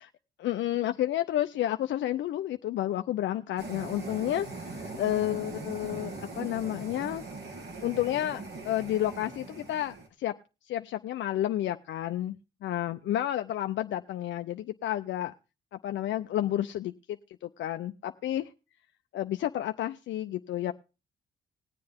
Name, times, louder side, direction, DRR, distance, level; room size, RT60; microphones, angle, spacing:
voice 1, 0.4-7.2 7.8-10.3 10.7-12.4 12.6-15.3 15.8-16.9 17.6-18.5 19.1-20.7, left 12 dB, 70° left, 0.5 m, -31 dB
sound 1, 3.6-10.1, right 3 dB, 55° right, 2.6 m, -41 dB
20.0 x 7.7 x 3.5 m
cardioid pair, 90°, 20 cm